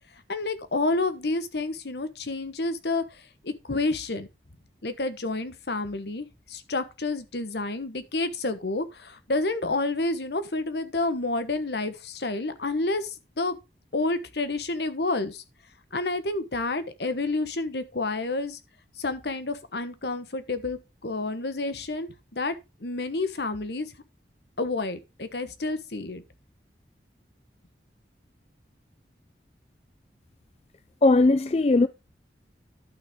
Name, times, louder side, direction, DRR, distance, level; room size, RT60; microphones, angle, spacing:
voice 1, 0.3-3.0 3.4-4.3 4.8-13.1 13.4-13.6 13.9-15.4 15.9-18.6 19.0-22.5 22.8-23.9 24.6-26.2, left 2 dB, 75° left, 1.1 m, -29 dB
voice 2, 31.0-31.9, left 2 dB, 35° left, 0.4 m, -19 dB
11.5 x 6.1 x 3.6 m
head